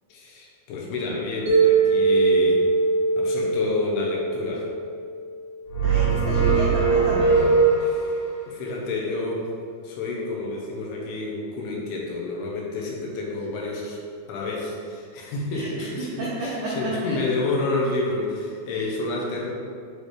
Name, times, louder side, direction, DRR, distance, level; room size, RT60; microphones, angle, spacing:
voice 1, 0.1-2.7 3.2-4.7 7.8-8.2 8.5-9.5 9.8-14.0 14.3-19.5, left 3 dB, 75° left, -2 dB, 2.6 m, -29 dB
Mallet percussion, 1.5-5.6, right 4 dB, 60° right, 2.3 m, -22 dB
sound 1, 5.7-8.1, right 4 dB, 55° left, 2.7 m, -20 dB
voice 2, 5.8-7.4 15.5-17.1 18.7-18.8, right 2 dB, 80° right, -7 dB, 1.8 m, -32 dB
8.1 x 4.1 x 3.2 m, 2.2 s
omnidirectional pair, 4.9 m